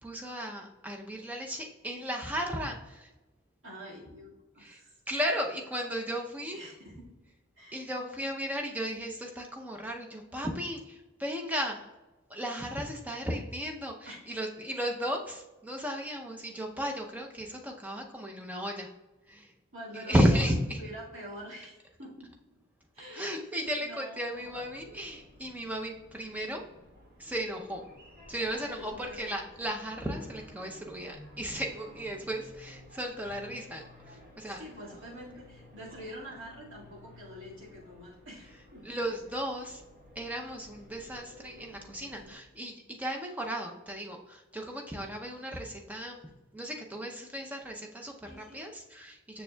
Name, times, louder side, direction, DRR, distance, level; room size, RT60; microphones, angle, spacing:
voice 1, 0.0-3.1 4.6-4.8 5.1-6.6 7.7-11.8 12.3-18.9 19.3-19.5 19.9-20.8 23.1-26.6 27.2-27.8 28.3-33.8 34.1-34.6 38.8-39.8 40.2-46.2 46.5-49.4, equal, 5° right, 1 dB, 0.5 m, -34 dB
voice 2, 3.6-5.0 6.5-7.0 7.6-7.9 14.1-14.2 15.8-15.9 19.7-20.5 20.8-22.3 22.9-24.4 28.6-29.4 34.4-39.0 48.3-48.6, equal, 60° right, -5 dB, 1.9 m, -46 dB
sound 1, 24.3-42.3, left 1 dB, 45° right, 1.9 m, -53 dB
6.8 x 6.4 x 2.2 m, 1.1 s
head